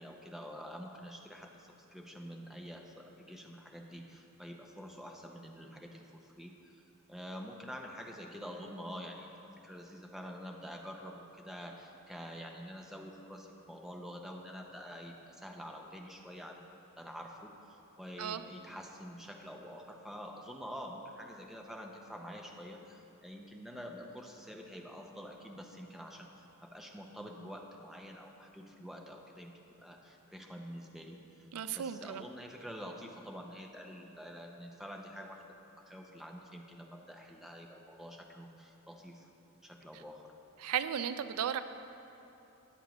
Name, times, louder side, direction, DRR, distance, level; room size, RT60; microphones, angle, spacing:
voice 1, 0.0-6.8 7.1-9.3 9.6-16.7 17.0-29.5 29.8-39.3 39.6-40.3, equal, ahead, 1 dB, 0.7 m, -47 dB
voice 2, 31.5-32.2 40.6-41.6, right 9 dB, 90° right, 12 dB, 0.4 m, -35 dB
13.5 x 9.6 x 3.1 m, 2.9 s
head